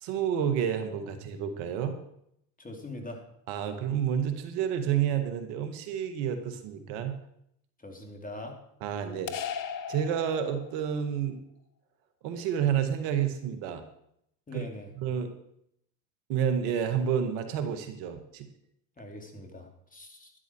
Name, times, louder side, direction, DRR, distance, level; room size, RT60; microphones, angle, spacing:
voice 1, 0.0-2.0 3.5-7.2 8.8-9.3 9.9-11.4 12.2-13.8 14.5-14.6 15.0-15.3 16.3-18.5, right 8 dB, 70° right, 8 dB, 1.9 m, -29 dB
voice 2, 2.6-3.2 7.8-8.6 14.5-14.9 19.0-20.3, left 1 dB, 15° left, 3 dB, 3.3 m, -42 dB
sound 1, 9.3-10.9, left 8 dB, 40° left, 1.4 m, -37 dB
12.0 x 12.0 x 4.7 m, 0.73 s
hypercardioid pair, 85°, 47 cm